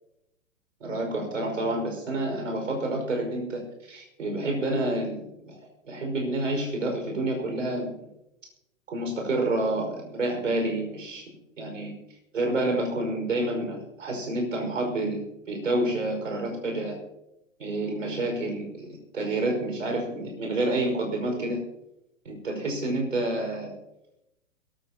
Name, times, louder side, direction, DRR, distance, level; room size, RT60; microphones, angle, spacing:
voice 1, 0.8-3.6 3.9-5.6 5.8-8.0 8.9-11.2 11.6-11.9 12.3-15.2 15.5-17.0 17.6-21.6 22.3-23.7, right 2 dB, 70° right, 2 dB, 5.4 m, -28 dB
22.5 x 14.0 x 2.9 m, 0.88 s
figure-of-eight pair, 115°, 40 cm